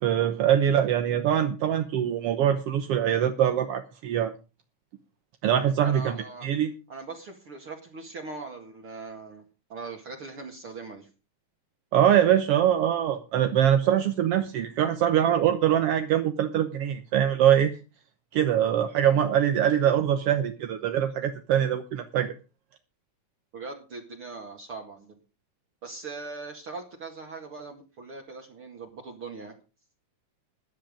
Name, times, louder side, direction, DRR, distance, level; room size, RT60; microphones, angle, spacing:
voice 1, 0.0-4.3 5.4-6.1 6.4-6.7 11.9-17.7 18.3-22.3, right 10 dB, 65° right, 8 dB, 1.5 m, -23 dB
voice 2, 5.8-6.5 6.9-9.4 9.7-11.1 23.5-25.2 25.8-29.6, right 4 dB, 45° right, 1 dB, 2.6 m, -40 dB
15.0 x 10.5 x 5.1 m, 0.32 s
omnidirectional pair, 3.7 m